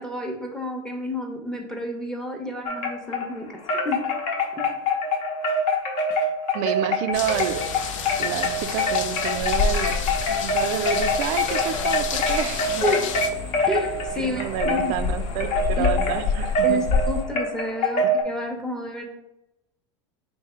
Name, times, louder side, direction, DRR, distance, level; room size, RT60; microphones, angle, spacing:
voice 1, 0.0-4.1 4.5-4.7 12.8-13.1 13.7-15.0 15.8-15.9 16.6-19.0, equal, 5° left, 2 dB, 0.8 m, -30 dB
Wind chime, 2.7-3.3 3.7-18.2, left 2 dB, 45° left, 0.9 m, -25 dB
voice 2, 6.5-7.6 8.2-10.0 10.3-12.9 14.2-16.8 18.0-18.1, right 11 dB, 50° right, 11 dB, 0.4 m, -29 dB
sound 1, 7.1-13.3, left 7 dB, 85° left, 0.5 m, -33 dB
sound 2, 7.1-17.2, left 4 dB, 70° left, 1.2 m, -30 dB
3.5 x 2.9 x 4.3 m, 0.86 s
hypercardioid pair, 105°, 16 cm